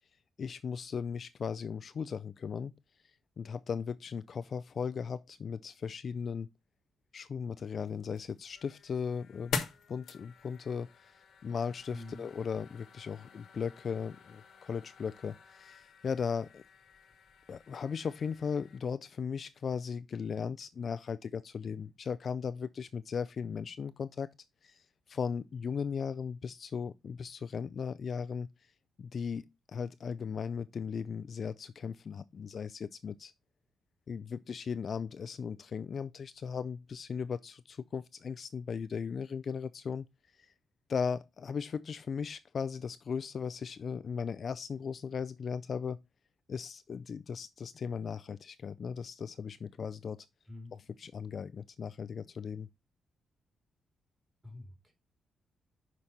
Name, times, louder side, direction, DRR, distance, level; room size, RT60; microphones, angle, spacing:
voice 1, 0.4-2.7 3.4-6.5 7.1-16.6 17.5-24.3 24.6-28.5 29.0-33.3 34.1-40.1 40.9-46.0 46.5-50.3 50.7-52.7, left 6 dB, 40° left, 0.3 m, -37 dB
sound 1, 7.8-18.8, left 6 dB, 65° left, 1.1 m, -45 dB
voice 2, 11.9-12.3 50.5-50.7 54.4-54.9, left 2 dB, 15° right, 2.6 m, -46 dB
5.9 x 5.0 x 4.1 m
cardioid pair, 155°, 0 cm